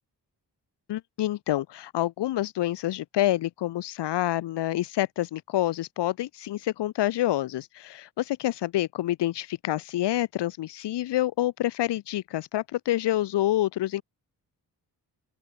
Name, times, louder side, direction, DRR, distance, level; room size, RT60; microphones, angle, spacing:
voice 1, 0.9-14.0, left 14 dB, 80° left, 0.6 m, -27 dB
open air
cardioid pair, 80°, 41 cm